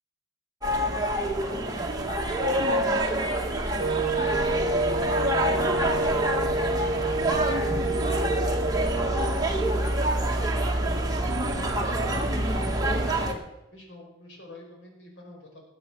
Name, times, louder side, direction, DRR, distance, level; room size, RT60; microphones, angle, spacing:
sound 1, 0.6-13.3, right 1 dB, 20° right, 1.9 m, -26 dB
voice 1, 1.4-5.4 10.8-11.6 13.7-15.6, left 1 dB, 70° left, 1 dB, 4.9 m, -49 dB
Wind instrument woodwind instrument, 3.8-9.5, right 1 dB, 45° right, 1.3 m, -29 dB
20.0 x 7.7 x 6.2 m, 0.91 s
head